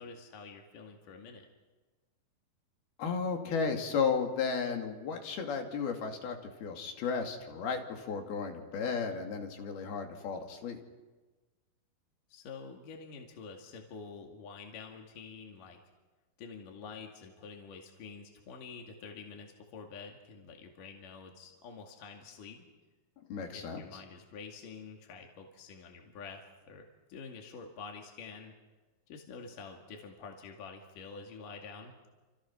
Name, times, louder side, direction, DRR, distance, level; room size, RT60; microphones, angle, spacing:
voice 1, 0.0-1.5 12.3-15.8 16.4-22.7 23.5-28.6 29.1-31.9, left 5 dB, 65° left, 1 dB, 3.8 m, -48 dB
voice 2, 3.0-10.8 23.3-23.8, left 5 dB, 85° left, 3 dB, 4.5 m, -34 dB
29.5 x 27.0 x 6.1 m, 1.2 s
omnidirectional pair, 4.3 m